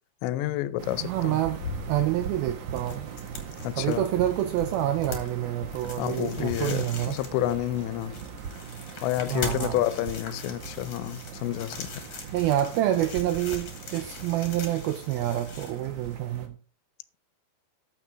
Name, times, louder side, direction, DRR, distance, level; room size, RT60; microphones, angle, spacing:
voice 1, 0.2-1.4 3.6-4.1 6.0-8.2 9.0-11.9, left 14 dB, 85° left, 3.0 m, -29 dB
sound 1, 0.8-16.5, right 7 dB, 60° right, 2.2 m, -40 dB
voice 2, 1.0-1.6 1.9-3.1 3.8-7.2 9.3-9.8 12.3-16.6, right 13 dB, 80° right, 2.2 m, -27 dB
sound 2, 1.2-16.4, left 4 dB, 45° left, 2.6 m, -42 dB
13.5 x 6.5 x 4.6 m
omnidirectional pair, 5.2 m